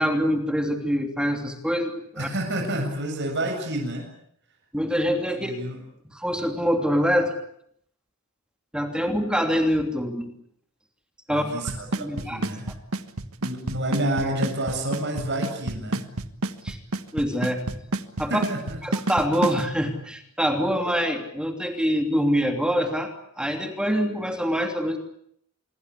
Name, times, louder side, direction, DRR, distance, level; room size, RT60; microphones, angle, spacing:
voice 1, 0.0-2.3 4.7-5.5 6.1-7.3 8.7-10.3 11.3-11.4 12.0-12.4 16.6-16.8 17.1-17.6 18.2-18.4 18.8-23.1 23.4-25.0, equal, 5° right, 5 dB, 3.0 m, -25 dB
voice 2, 2.2-4.1 5.4-5.8 11.3-12.7 13.4-16.1 18.3-18.8, right 1 dB, 55° right, 3 dB, 7.5 m, -29 dB
Drum kit / Snare drum / Bass drum, 11.7-19.6, right 2 dB, 85° right, 1.6 m, -28 dB
27.0 x 23.0 x 8.4 m, 0.69 s
head